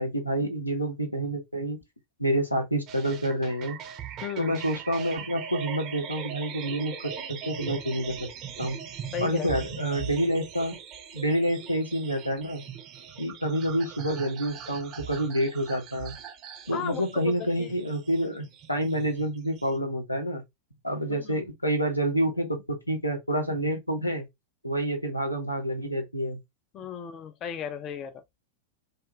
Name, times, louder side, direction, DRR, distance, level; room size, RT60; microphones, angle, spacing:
voice 1, 0.0-1.8 2.2-3.8 4.4-8.3 8.6-8.8 9.2-10.7 11.1-12.6 13.2-16.1 16.7-20.4 20.8-24.3 24.6-26.4, equal, 85° left, 0.7 m, -28 dB
sound 1, 2.9-19.8, right 8 dB, 35° right, 0.6 m, -40 dB
voice 2, 4.2-4.6 9.1-9.5 16.7-17.7 21.1-21.4 26.7-28.1, left 8 dB, 30° left, 0.4 m, -35 dB
2.4 x 2.3 x 2.9 m
figure-of-eight pair, 90°, 0 cm